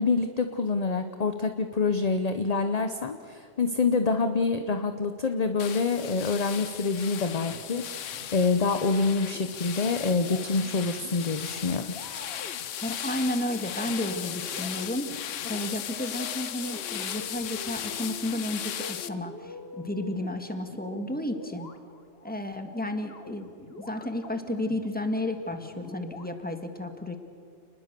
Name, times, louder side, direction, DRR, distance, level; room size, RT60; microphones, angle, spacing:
voice 1, 0.0-11.9, left 4 dB, 35° left, 8 dB, 0.9 m, -26 dB
sound 1, 5.6-19.1, left 10 dB, 85° left, 1.1 m, -37 dB
sound 2, 7.5-8.9 9.2-22.3 23.0-26.3, left 4 dB, 55° left, 1.4 m, -46 dB
voice 2, 12.8-21.7 22.2-27.2, left 1 dB, 5° left, 6 dB, 1.7 m, -32 dB
29.5 x 20.5 x 6.8 m, 2.3 s
omnidirectional pair, 1.3 m